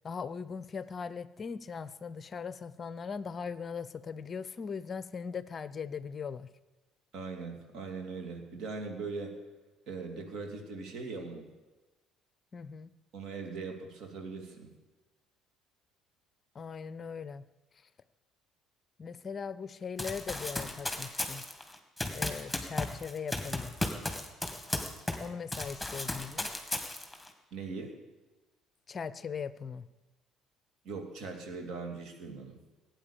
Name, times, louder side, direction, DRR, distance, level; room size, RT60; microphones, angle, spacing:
voice 1, 0.0-6.5 12.5-12.9 16.5-17.4 19.0-21.4 22.1-23.7 25.2-26.5 28.9-29.8, left 6 dB, 35° left, 16 dB, 0.6 m, -39 dB
voice 2, 7.1-9.4 9.9-11.5 13.1-14.7 27.5-27.9 30.8-32.6, right 4 dB, 55° right, 3 dB, 2.8 m, -40 dB
Run, 20.0-25.3 25.5-27.3, left 2 dB, 5° left, 2.2 m, -35 dB
17.5 x 9.0 x 7.2 m, 1.1 s
figure-of-eight pair, 55°, 0 cm